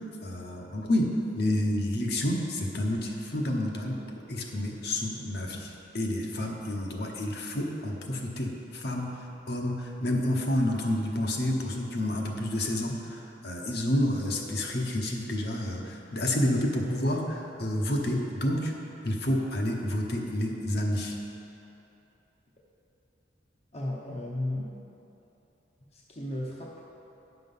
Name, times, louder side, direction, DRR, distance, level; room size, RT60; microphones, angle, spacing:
voice 1, 0.0-4.0 4.3-18.7 19.0-21.2, left 1 dB, 60° left, 0 dB, 1.0 m, -29 dB
voice 2, 23.7-24.7 25.9-26.7, left 1 dB, 35° left, -3 dB, 0.8 m, -34 dB
9.9 x 6.0 x 5.5 m, 2.9 s
head